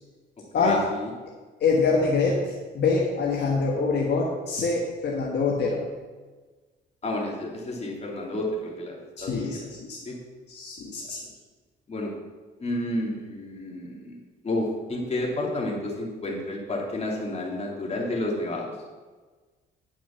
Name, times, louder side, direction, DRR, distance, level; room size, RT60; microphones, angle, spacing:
voice 1, 0.6-1.1 7.0-9.6 10.0-10.2 11.9-12.1 12.6-14.2 14.4-18.7, left 1 dB, 35° left, -2 dB, 2.8 m, -30 dB
voice 2, 1.6-5.8 9.2-10.0 10.5-11.2, left 4 dB, 60° left, -2 dB, 1.5 m, -25 dB
10.0 x 6.0 x 5.8 m, 1.4 s
cardioid pair, 90°, 20 cm